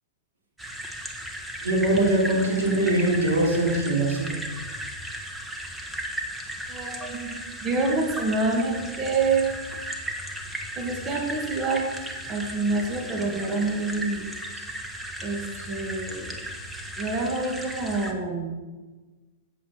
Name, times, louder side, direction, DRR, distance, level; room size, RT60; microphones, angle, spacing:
sound 1, 0.6-18.1, right 1 dB, 5° right, 1.3 m, -36 dB
voice 1, 1.6-4.3 14.6-14.7 15.6-15.7, right 1 dB, 90° right, -2 dB, 3.3 m, -22 dB
voice 2, 6.7-7.3 7.6-9.4 10.8-11.8 12.3-14.2 15.2-16.3 17.0-18.6, right 3 dB, 30° right, 1 dB, 1.9 m, -27 dB
8.5 x 7.8 x 5.7 m, 1.3 s
hypercardioid pair, 125°, 0 cm